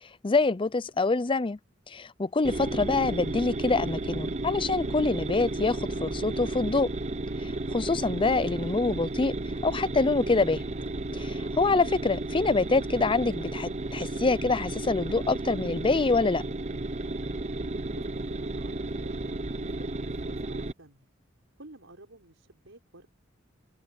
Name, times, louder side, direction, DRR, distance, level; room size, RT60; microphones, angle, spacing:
voice 1, 0.2-1.6 1.9-6.9 7.7-9.3 9.6-10.6 11.1-16.4, left 3 dB, 25° left, 0.5 m, -25 dB
sound 1, 2.4-20.7, right 2 dB, 35° right, 0.8 m, -33 dB
voice 2, 17.7-21.1 21.6-23.1, right 2 dB, 90° right, 4.6 m, -52 dB
head